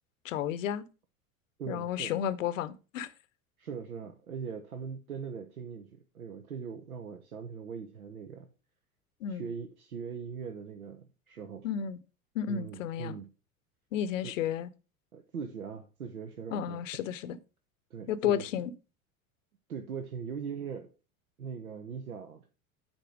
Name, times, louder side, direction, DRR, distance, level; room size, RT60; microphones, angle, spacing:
voice 1, 0.2-0.8 1.7-3.1 9.2-9.5 11.6-12.0 12.3-13.2 13.9-14.7 16.5-17.4 18.1-18.7, left 9 dB, 60° left, 0.8 m, -32 dB
voice 2, 1.6-2.1 3.6-8.5 9.3-11.7 12.5-13.3 14.2-14.3 15.1-16.8 17.9-18.4 19.7-20.9 21.4-22.5, right 6 dB, 80° right, 1.0 m, -40 dB
8.8 x 4.5 x 4.9 m
figure-of-eight pair, 80°, 43 cm